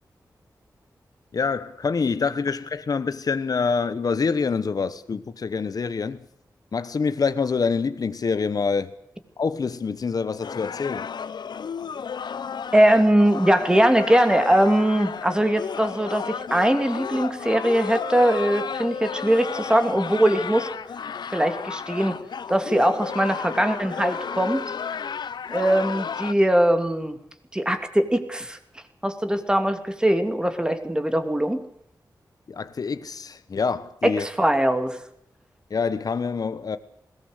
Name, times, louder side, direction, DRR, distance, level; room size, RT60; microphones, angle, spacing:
voice 1, 1.3-6.3 6.7-8.9 9.4-11.1 32.5-34.3 35.7-36.8, left 5 dB, 60° left, 1.0 m, -26 dB
sound 1, 10.4-26.3, left 6 dB, 85° left, 0.8 m, -33 dB
voice 2, 12.7-20.7 21.3-22.1 22.5-24.6 25.5-27.2 27.5-28.6 29.0-31.6 34.2-35.0, right 1 dB, 10° right, 2.7 m, -21 dB
21.5 x 18.0 x 8.1 m
wide cardioid pair, 110°, 7 cm